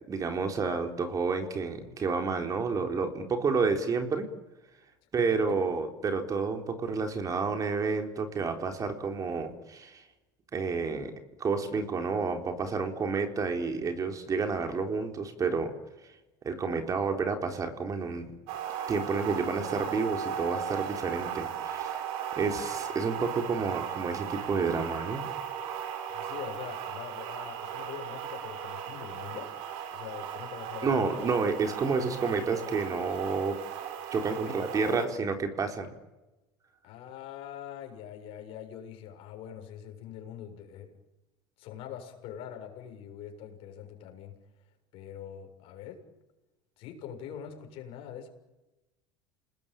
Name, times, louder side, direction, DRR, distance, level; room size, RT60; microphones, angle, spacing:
voice 1, 0.1-4.3 5.1-10.0 10.5-11.1 11.4-15.7 16.4-18.3 18.9-22.0 22.4-25.2 30.8-33.6 34.1-35.9, right 4 dB, 30° right, 5 dB, 3.9 m, -30 dB
sound 1, 18.5-35.1, right 8 dB, 65° right, 5.0 m, -37 dB
voice 2, 26.1-29.5 29.9-31.3 34.4-35.1 36.8-40.9 41.6-44.4 44.9-46.0 46.8-48.3, left 9 dB, 60° left, 4 dB, 7.1 m, -43 dB
29.0 x 20.0 x 9.1 m, 1.0 s
supercardioid pair, 105°, 11 cm